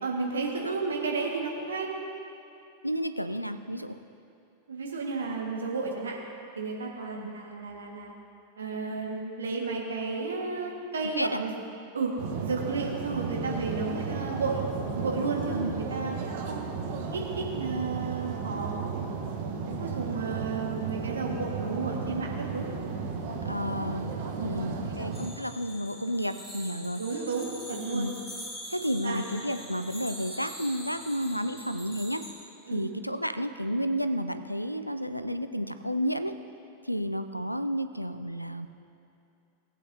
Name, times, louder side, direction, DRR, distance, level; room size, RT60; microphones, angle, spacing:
voice 1, 0.0-1.9 4.7-6.2 6.5-8.1 8.6-11.5 11.9-12.1 12.4-16.6 17.1-19.0 19.8-22.7 24.3-25.0 27.0-28.1 29.0-29.3 32.7-32.9, right 4 dB, 70° right, -1 dB, 1.6 m, -33 dB
voice 2, 2.8-4.0 7.1-7.3 11.2-11.4 15.5-15.7 23.5-24.1 24.4-27.0 27.9-28.1 28.7-32.2 32.7-36.3 36.8-38.7, equal, 90° left, 10 dB, 0.4 m, -31 dB
sound 1, 12.2-25.3, right 5 dB, 50° right, 1.1 m, -34 dB
sound 2, 25.1-32.3, equal, 10° left, 2.2 m, -44 dB
19.0 x 8.4 x 2.7 m, 2.8 s
figure-of-eight pair, 90°, 0 cm